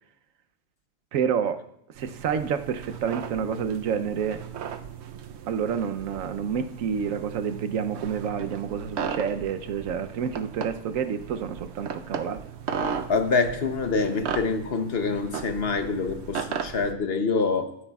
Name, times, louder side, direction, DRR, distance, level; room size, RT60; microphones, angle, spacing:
voice 1, 1.1-1.6 2.0-4.4 5.5-12.4, right 7 dB, 90° right, 9 dB, 1.1 m, -29 dB
sound 1, 2.0-16.9, right 7 dB, 65° right, 0.8 m, -36 dB
voice 2, 13.1-17.7, left 4 dB, 55° left, 6 dB, 1.0 m, -26 dB
14.0 x 12.5 x 2.3 m, 0.76 s
omnidirectional pair, 1.3 m